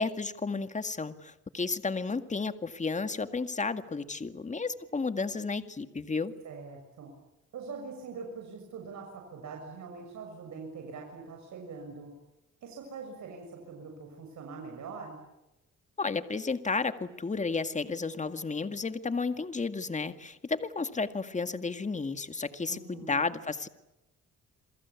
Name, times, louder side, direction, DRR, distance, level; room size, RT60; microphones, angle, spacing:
voice 1, 0.0-6.3 16.0-23.7, left 4 dB, 25° left, 9 dB, 2.0 m, -32 dB
voice 2, 6.4-7.1 7.5-12.1 12.6-15.2 22.7-23.2, right 4 dB, 70° right, 2 dB, 6.7 m, -43 dB
29.0 x 22.5 x 8.5 m, 0.95 s
cardioid pair, 90°, 30 cm